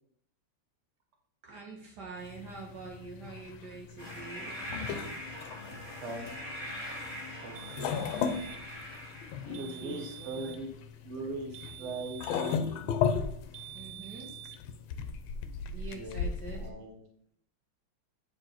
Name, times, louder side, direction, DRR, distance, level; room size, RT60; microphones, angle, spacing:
voice 1, 1.4-5.2 5.6-6.0 9.5-10.6 11.8-12.0 13.7-14.3 15.7-16.7, right 4 dB, 60° right, -1 dB, 1.5 m, -46 dB
sound 1, 2.2-16.7, left 6 dB, 80° left, 1.4 m, -36 dB
sound 2, 4.0-9.7, equal, 25° left, 2.3 m, -42 dB
voice 2, 5.7-6.4 7.4-8.0 9.5-10.7 11.0-12.8 15.9-16.2 16.5-17.0, right 2 dB, 40° right, 2 dB, 1.4 m, -40 dB
sound 3, 7.6-8.7 9.5-10.7 11.5-12.7 13.5-14.6, right 14 dB, 80° right, 0.8 m, -47 dB
8.8 x 4.8 x 4.0 m, 0.66 s
omnidirectional pair, 2.2 m